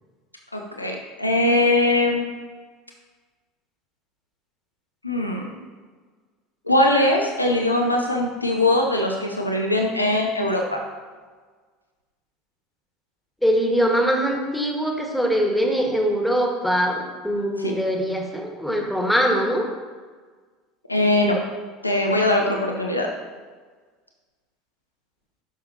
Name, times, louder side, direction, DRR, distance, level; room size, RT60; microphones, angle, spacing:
voice 1, 0.5-2.2 5.0-5.5 6.7-10.8 17.6-17.8 20.9-21.4 21.8-23.1, left 1 dB, 90° left, 1 dB, 0.7 m, -21 dB
voice 2, 13.4-19.7, equal, ahead, 1 dB, 1.5 m, -22 dB
12.0 x 6.5 x 2.8 m, 1.5 s
figure-of-eight pair, 70°, 0 cm